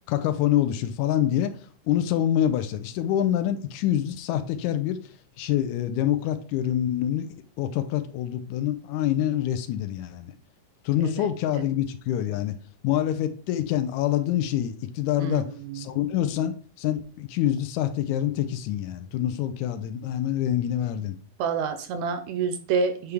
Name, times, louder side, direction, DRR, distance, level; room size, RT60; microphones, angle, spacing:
voice 1, 0.1-1.5 1.9-5.0 5.4-7.3 7.6-10.3 10.8-12.6 12.8-15.5 15.7-21.2, left 11 dB, 80° left, 1.8 m, -26 dB
voice 2, 15.2-15.9 21.4-23.1, right 5 dB, 80° right, 1.6 m, -28 dB
8.1 x 3.4 x 3.4 m
omnidirectional pair, 3.6 m